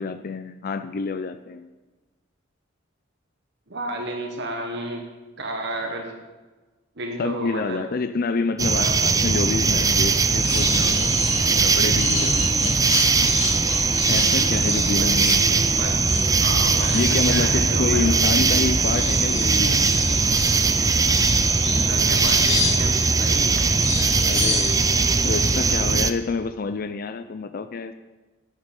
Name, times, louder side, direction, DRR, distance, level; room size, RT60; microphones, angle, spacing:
voice 1, 0.0-1.7 7.2-11.2 11.6-12.8 14.1-15.6 16.9-20.2 24.1-24.8 25.2-27.9, left 4 dB, 50° left, 10 dB, 0.5 m, -28 dB
voice 2, 3.7-5.0 5.4-6.2 7.0-7.8 8.7-9.0 14.7-15.3 15.8-16.0 16.4-18.2 21.7-23.9, right 2 dB, 60° right, 2 dB, 1.5 m, -32 dB
sound 1, 8.6-26.1, right 4 dB, 15° right, 0.4 m, -20 dB
sound 2, 9.8-25.6, left 4 dB, 65° left, 2.4 m, -31 dB
11.5 x 8.7 x 5.3 m, 1.2 s
head